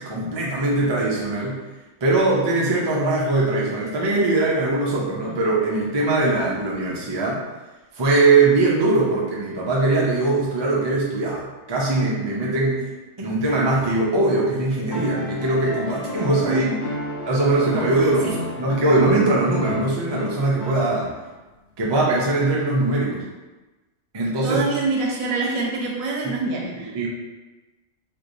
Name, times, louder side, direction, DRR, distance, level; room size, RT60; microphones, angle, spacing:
voice 1, 0.0-1.6 2.0-7.4 7.9-12.8 13.2-16.7 17.3-21.1 21.8-23.2 24.1-24.6 26.9-27.1, right 2 dB, 45° right, -4 dB, 0.3 m, -21 dB
sound 1, 14.9-21.3 22.8-22.9, left 2 dB, 60° left, 0.9 m, -32 dB
voice 2, 16.5-16.8 18.2-18.3 24.4-26.9, right 3 dB, 85° right, -2 dB, 1.1 m, -25 dB
3.1 x 2.6 x 2.6 m, 1.1 s
omnidirectional pair, 1.4 m